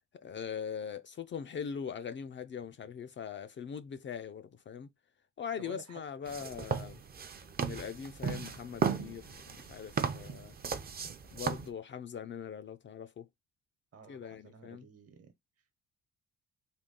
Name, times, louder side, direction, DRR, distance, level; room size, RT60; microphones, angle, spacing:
voice 1, 0.2-4.9 5.4-7.0 7.6-10.5 11.3-13.3 14.1-14.9, left 7 dB, 40° left, 0.5 m, -41 dB
voice 2, 5.6-6.0 13.9-15.3, right 6 dB, 50° right, 1.1 m, -52 dB
sound 1, 6.3-11.7, right 6 dB, 30° right, 0.6 m, -36 dB
3.7 x 2.3 x 3.7 m
cardioid pair, 90°, 30 cm